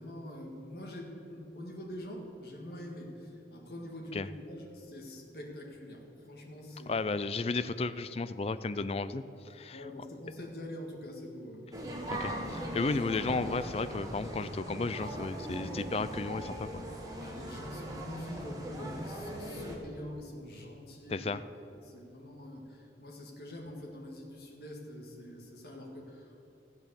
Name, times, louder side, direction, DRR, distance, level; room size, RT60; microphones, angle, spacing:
voice 1, 0.0-7.0 9.7-11.7 12.0-12.3 17.2-21.3 21.7-26.5, left 1 dB, 60° left, 1 dB, 2.0 m, -45 dB
voice 2, 6.9-9.8 12.1-16.8 21.1-21.4, left 3 dB, 35° left, 13 dB, 0.4 m, -33 dB
sound 1, 11.7-19.8, right 1 dB, 20° right, 1.6 m, -40 dB
14.0 x 8.1 x 7.0 m, 2.9 s
head